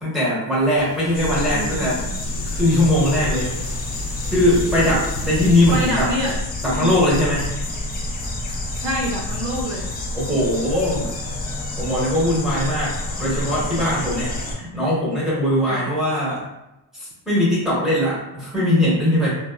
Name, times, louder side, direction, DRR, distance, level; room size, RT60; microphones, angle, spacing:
voice 1, 0.0-2.0 2.4-3.5 4.3-6.1 6.6-7.6 10.1-11.1 11.8-16.4 16.9-19.3, left 1 dB, ahead, -8 dB, 0.9 m, -20 dB
sound 1, 0.7-5.9, left 1 dB, 65° left, 0.7 m, -36 dB
sound 2, 1.1-14.5, left 1 dB, 25° left, 0.3 m, -28 dB
voice 2, 1.5-2.1 5.7-6.3 6.8-7.0 8.6-9.9 15.7-15.9, right 1 dB, 50° right, -1 dB, 0.5 m, -27 dB
4.0 x 2.0 x 2.3 m, 0.94 s
cardioid pair, 165°, 43 cm